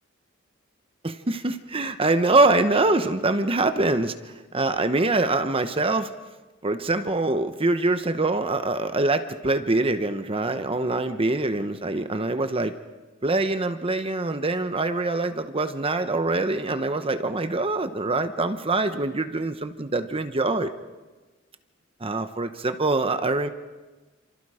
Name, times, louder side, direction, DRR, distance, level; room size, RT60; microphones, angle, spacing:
voice 1, 1.0-6.1 6.6-12.8 13.2-20.7 22.0-23.5, right 2 dB, 25° right, 9 dB, 1.0 m, -24 dB
28.5 x 27.0 x 5.0 m, 1.3 s
head